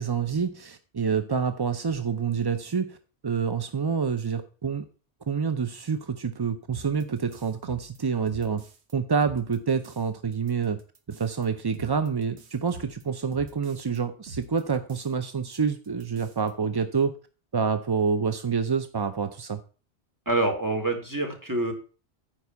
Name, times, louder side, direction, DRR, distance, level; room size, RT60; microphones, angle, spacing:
voice 1, 0.0-3.0 3.2-4.8 5.3-8.6 8.9-10.8 11.2-17.2 17.5-19.6, right 6 dB, 35° right, 10 dB, 0.4 m, -27 dB
sound 1, 6.7-8.9 9.2-10.1 10.3-14.0 14.3-15.2 15.5-15.6 15.8-16.5, right 3 dB, 85° right, 1.4 m, -46 dB
voice 2, 20.3-21.7, right 2 dB, 20° right, 2 dB, 2.0 m, -26 dB
9.5 x 4.5 x 6.9 m, 0.37 s
omnidirectional pair, 1.1 m